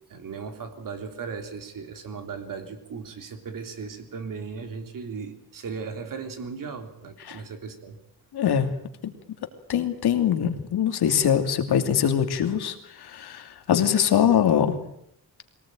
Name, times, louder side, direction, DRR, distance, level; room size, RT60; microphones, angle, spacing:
voice 1, 0.1-8.0, right 5 dB, 55° right, 6 dB, 3.4 m, -37 dB
voice 2, 8.3-8.7 9.0-9.1 9.7-14.8, left 9 dB, 80° left, 7 dB, 2.8 m, -23 dB
22.5 x 19.0 x 9.2 m, 0.74 s
wide cardioid pair, 165°, 38 cm